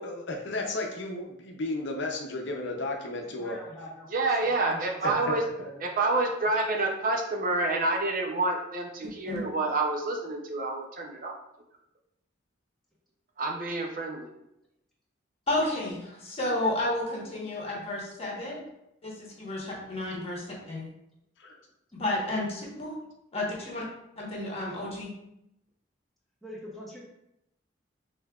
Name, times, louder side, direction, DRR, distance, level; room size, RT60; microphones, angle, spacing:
voice 1, 0.0-3.6 5.0-5.3 21.4-21.6, left 2 dB, 65° left, 1 dB, 0.6 m, -33 dB
voice 2, 3.3-4.1 4.4-5.8 6.4-6.5 26.4-27.0, equal, ahead, -6 dB, 1.1 m, -44 dB
voice 3, 4.1-5.4 5.8-11.4 13.4-14.3, right 2 dB, 45° right, 1 dB, 0.5 m, -28 dB
voice 4, 15.5-18.6 19.0-20.9 22.0-22.9 23.3-23.8 24.2-25.1, left 1 dB, 30° left, -3 dB, 1.2 m, -31 dB
5.4 x 3.3 x 2.3 m, 0.83 s
head